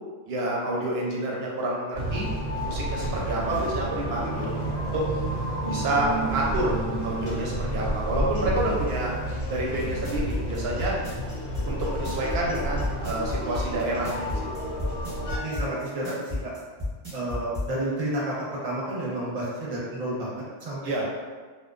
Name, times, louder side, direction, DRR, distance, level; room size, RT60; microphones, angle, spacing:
voice 1, 0.3-2.3 2.7-5.0 5.6-6.7 7.0-9.1 9.5-11.0 11.6-14.4 20.8-21.0, right 1 dB, 70° right, -3 dB, 0.8 m, -28 dB
sound 1, 1.9-15.4, right 1 dB, 75° left, 1.0 m, -30 dB
sound 2, 9.8-17.7, left 2 dB, 15° right, 1.0 m, -32 dB
voice 2, 15.4-16.1 16.4-16.5 17.1-21.0, right 1 dB, 40° right, -7 dB, 0.7 m, -31 dB
2.4 x 2.1 x 2.3 m, 1.4 s
omnidirectional pair, 1.1 m